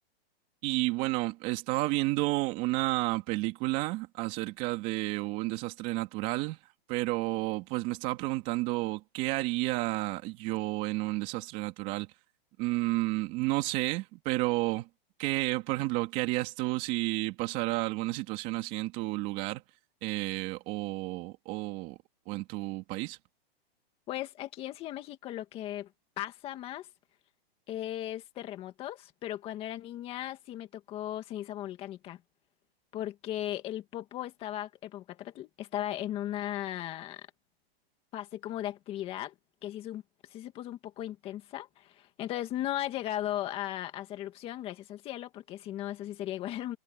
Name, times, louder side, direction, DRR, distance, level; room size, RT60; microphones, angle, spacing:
voice 1, 0.6-6.6 6.9-12.1 12.6-14.9 15.2-19.6 20.0-22.0 22.3-23.2, right 21 dB, 25° right, 2.8 m, -31 dB
voice 2, 24.1-25.9 26.2-26.9 27.7-32.2 32.9-37.3 38.1-39.3 39.6-46.8, left 13 dB, 20° left, 2.2 m, -37 dB
hypercardioid pair, 170°, 31 cm